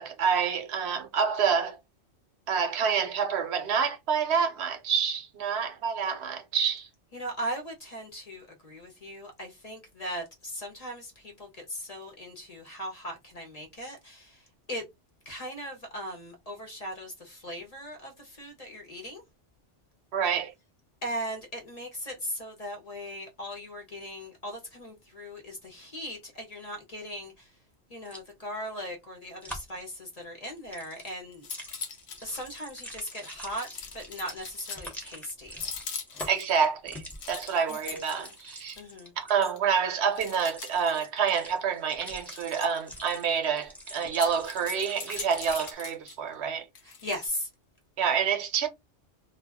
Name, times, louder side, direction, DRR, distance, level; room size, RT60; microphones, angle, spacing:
voice 1, 0.0-1.8 2.5-6.9 20.1-20.5 36.3-38.8 39.2-46.7 48.0-48.7, right 6 dB, 70° right, 0.8 m, -28 dB
voice 2, 7.1-14.4 14.7-14.8 15.3-19.2 21.0-27.5 27.9-31.5 32.2-35.6 37.7-37.8 38.8-39.1 46.8-47.5, equal, 40° left, 0.7 m, -38 dB
sound 1, 28.0-28.3 29.4-29.8 30.6-39.4 40.1-45.7, equal, ahead, 0.5 m, -45 dB
sound 2, 30.8-31.0 31.3-32.6 33.1-35.0 35.5-36.6 37.0-38.9 39.4-39.6 40.2-41.2 42.1-43.0 44.1-46.2 46.7-47.3, left 6 dB, 65° left, 0.9 m, -41 dB
2.3 x 2.2 x 3.4 m
omnidirectional pair, 1.2 m